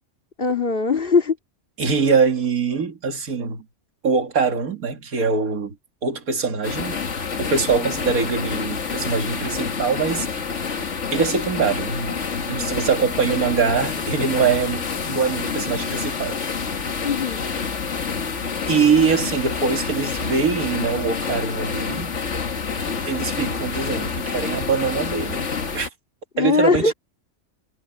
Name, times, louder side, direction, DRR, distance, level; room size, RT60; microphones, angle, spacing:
voice 1, 0.4-1.4 17.0-17.4 26.3-26.9, left 4 dB, 40° left, 2.6 m, -20 dB
voice 2, 1.8-3.7 4.0-5.8 6.0-7.0 7.4-10.3 11.1-12.2 12.5-16.4 18.7-22.1 23.1-25.5 25.7-25.9 26.4-26.9, right 5 dB, 80° right, 2.4 m, -23 dB
sound 1, 6.6-25.9, left 5 dB, 55° left, 1.8 m, -28 dB
omnidirectional pair, 1.5 m